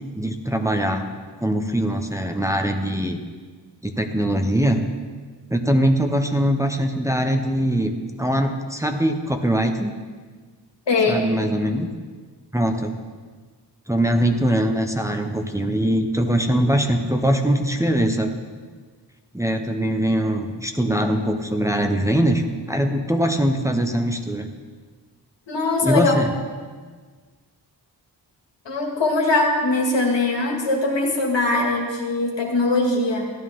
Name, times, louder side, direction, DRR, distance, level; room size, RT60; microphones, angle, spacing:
voice 1, 0.1-1.1 1.4-3.2 3.8-4.8 5.5-9.9 11.1-11.9 12.5-13.0 13.9-18.3 19.3-22.4 22.7-24.5 25.8-26.3, right 1 dB, 5° right, 3 dB, 0.8 m, -22 dB
voice 2, 10.9-11.2 25.5-26.2 28.7-33.2, left 2 dB, 90° left, -1 dB, 2.1 m, -21 dB
14.5 x 10.5 x 3.7 m, 1.5 s
wide cardioid pair, 70°, 42 cm